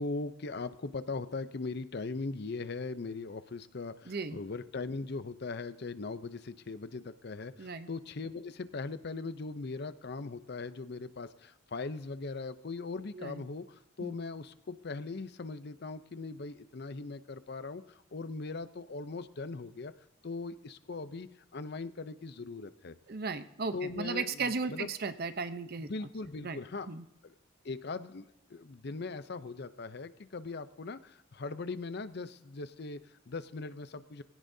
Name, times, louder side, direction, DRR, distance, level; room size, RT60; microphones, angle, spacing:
voice 1, 0.0-19.9 20.2-21.3 21.5-22.9 23.7-24.9 25.8-26.9 27.2-27.3 27.6-34.2, left 3 dB, 55° left, 13 dB, 0.6 m, -40 dB
voice 2, 4.1-4.4 7.6-7.9 13.1-13.4 14.0-14.2 23.1-25.9 26.4-26.6 26.9-27.0, right 4 dB, 50° right, 10 dB, 0.7 m, -36 dB
21.5 x 16.5 x 2.7 m, 0.83 s
head